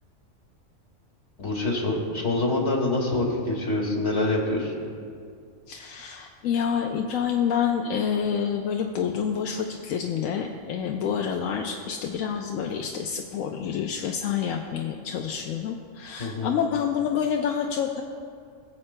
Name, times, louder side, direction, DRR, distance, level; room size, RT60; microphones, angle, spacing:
voice 1, 1.4-4.7 16.2-16.5, left 2 dB, 55° left, -1 dB, 2.1 m, -25 dB
voice 2, 5.7-18.0, left 7 dB, 85° left, 2 dB, 1.0 m, -28 dB
22.0 x 7.5 x 2.2 m, 2.3 s
omnidirectional pair, 1.4 m